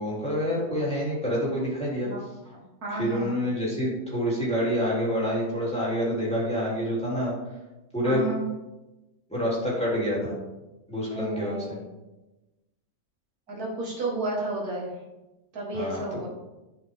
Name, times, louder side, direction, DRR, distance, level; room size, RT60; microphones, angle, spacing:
voice 1, 0.0-2.1 2.9-7.3 7.9-8.3 9.3-10.4 10.9-11.8 15.7-16.3, equal, 5° left, -7 dB, 3.1 m, -27 dB
voice 2, 2.8-3.4 8.0-8.5 11.1-11.8 13.5-14.9 15.5-16.3, right 2 dB, 70° right, -2 dB, 2.3 m, -32 dB
11.5 x 5.5 x 3.7 m, 1.0 s
omnidirectional pair, 1.6 m